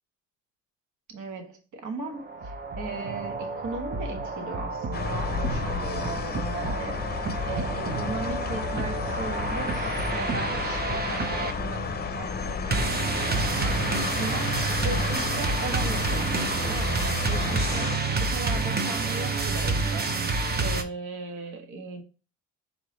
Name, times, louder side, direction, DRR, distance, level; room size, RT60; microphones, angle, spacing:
voice 1, 1.1-7.0 7.4-20.1 20.6-22.0, right 3 dB, 75° right, 1.4 m, -37 dB
sound 1, 2.1-20.8, right 3 dB, 30° right, 0.8 m, -29 dB
sound 2, 4.9-18.0, left 6 dB, 30° left, 0.6 m, -32 dB
4.8 x 3.6 x 3.1 m
cardioid pair, 90°, 30 cm